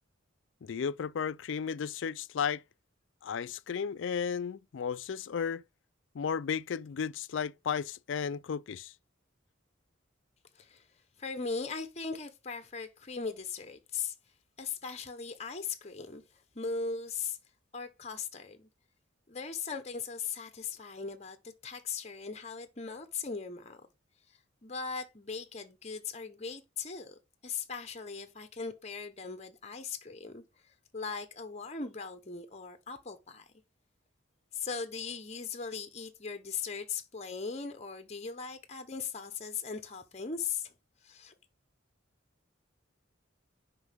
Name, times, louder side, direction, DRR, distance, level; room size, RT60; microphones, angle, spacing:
voice 1, 0.6-2.6 3.2-5.6 6.1-8.9, left 7 dB, 70° left, 0.4 m, -34 dB
voice 2, 11.2-14.1 14.6-16.2 16.5-17.4 17.7-18.7 19.3-23.8 24.6-30.4 30.9-33.4 34.5-40.7 41.0-41.3, left 5 dB, 35° left, 1.0 m, -39 dB
9.6 x 5.4 x 3.5 m
head